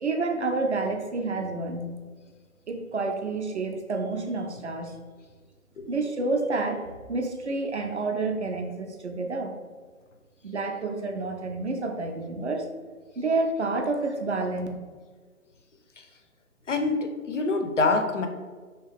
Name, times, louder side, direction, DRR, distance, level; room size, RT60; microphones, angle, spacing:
voice 1, 0.0-1.9 2.7-5.0 5.9-9.5 10.4-12.7 13.2-14.7, right 3 dB, 50° right, 3 dB, 0.5 m, -29 dB
voice 2, 16.7-18.3, left 3 dB, 55° left, 6 dB, 0.5 m, -26 dB
3.1 x 2.8 x 3.4 m, 1.5 s
figure-of-eight pair, 150°, 44 cm